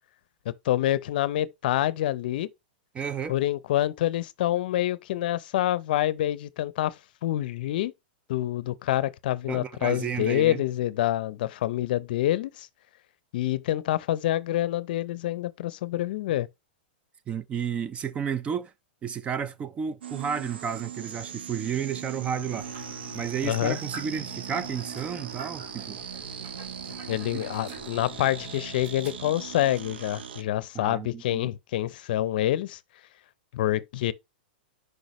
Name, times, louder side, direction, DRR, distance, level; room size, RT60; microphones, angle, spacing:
voice 1, 0.6-2.5 3.3-7.0 7.2-7.9 8.3-12.7 13.3-16.5 23.4-23.8 27.1-32.8 33.5-34.1, left 13 dB, 60° left, 0.6 m, -27 dB
voice 2, 2.9-3.4 9.5-10.6 17.3-18.7 19.0-22.7 23.1-26.0 27.3-27.4 30.7-31.5, right 7 dB, 20° right, 0.4 m, -32 dB
sound 1, 20.0-30.4, right 8 dB, 85° right, 0.6 m, -39 dB
sound 2, 22.5-30.0, right 1 dB, 55° right, 3.7 m, -45 dB
6.4 x 4.9 x 3.0 m
hypercardioid pair, 130°, 6 cm